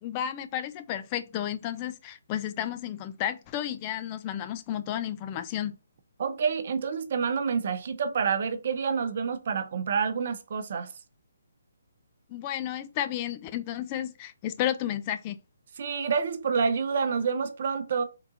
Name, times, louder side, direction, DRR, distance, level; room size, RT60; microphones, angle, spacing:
voice 1, 0.0-5.8 12.3-15.4, left 11 dB, 25° left, 0.3 m, -32 dB
voice 2, 6.2-10.9 15.8-18.0, right 6 dB, 50° right, 0.6 m, -28 dB
3.7 x 2.7 x 3.7 m
hypercardioid pair, 150°, 0 cm